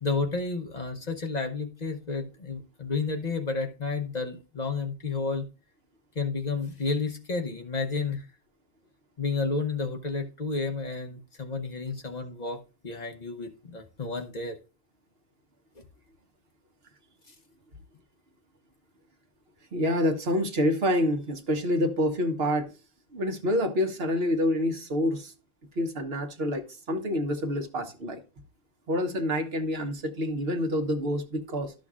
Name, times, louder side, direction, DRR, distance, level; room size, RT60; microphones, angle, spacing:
voice 1, 0.0-5.4 6.1-8.2 9.2-14.6, left 4 dB, 45° left, 1.0 m, -31 dB
voice 2, 19.7-22.7 23.1-25.3 25.8-28.2 28.9-31.7, equal, 75° right, 1.4 m, -27 dB
12.5 x 6.3 x 2.4 m
omnidirectional pair, 1.0 m